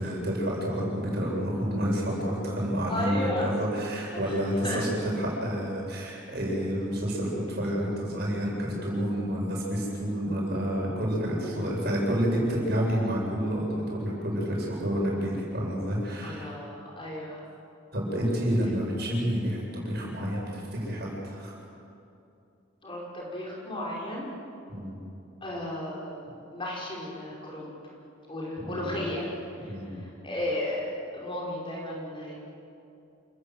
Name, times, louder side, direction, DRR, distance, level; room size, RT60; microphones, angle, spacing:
voice 1, 0.0-16.5 17.9-21.5 24.7-25.0 28.6-29.0 29.7-30.0, equal, 50° right, -3 dB, 7.9 m, -29 dB
voice 2, 2.9-3.5 4.1-4.9 16.2-17.4 18.6-18.7 22.8-24.3 25.4-27.7 28.3-29.3 29.6-29.7 30.0-30.9 31.1-32.3, left 1 dB, 25° left, -4 dB, 5.1 m, -34 dB
28.5 x 20.0 x 8.1 m, 2.7 s
head